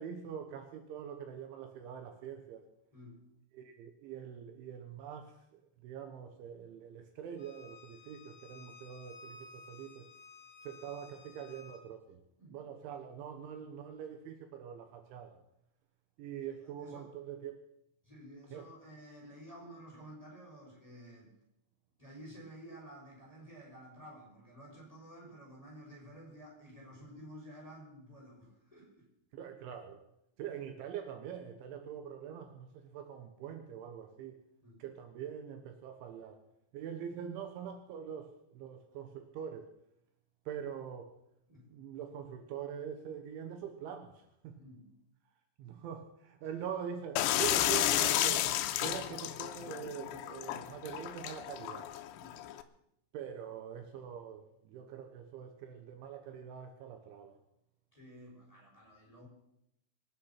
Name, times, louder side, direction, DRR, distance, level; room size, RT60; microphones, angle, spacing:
voice 1, 0.0-2.6 3.5-10.1 10.6-12.2 12.5-15.4 16.2-17.6 18.5-18.7 29.3-30.1 30.4-34.4 34.8-36.4 36.7-39.7 40.5-41.2 41.7-44.6 45.6-48.5 48.8-51.9 53.1-57.4, right 8 dB, 75° right, 6 dB, 3.3 m, -44 dB
Bowed string instrument, 7.4-11.8, left 4 dB, 65° left, 0.9 m, -55 dB
voice 2, 18.0-21.3 22.0-29.0 34.6-34.8 41.5-41.7 44.6-44.9 46.4-46.6 52.1-52.4 57.9-59.3, equal, 5° left, -3 dB, 4.9 m, -52 dB
sound 1, 47.2-52.6, left 13 dB, 90° left, 3.5 m, -32 dB
25.5 x 9.4 x 5.8 m, 0.80 s
omnidirectional pair, 5.9 m